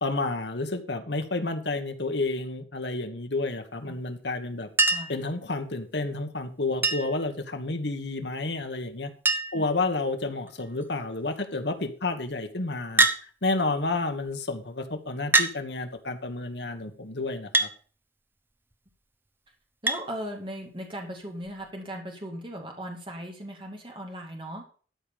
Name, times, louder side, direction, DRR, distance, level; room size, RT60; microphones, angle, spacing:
voice 1, 0.0-4.7 5.1-9.1 9.5-13.1 13.4-17.7, left 2 dB, 65° left, 7 dB, 1.5 m, -30 dB
Chink clink, 4.8-5.2 6.8-7.2 8.6-8.7 8.9-9.0 9.3-9.7 10.5-10.8 13.0-13.2 14.3-14.4 15.3-15.6 17.5-17.7 19.9-20.0 21.5-21.6, right 2 dB, 10° right, 0.9 m, -23 dB
voice 2, 19.8-24.6, equal, 25° right, 2 dB, 2.3 m, -38 dB
12.5 x 5.1 x 7.0 m, 0.42 s
head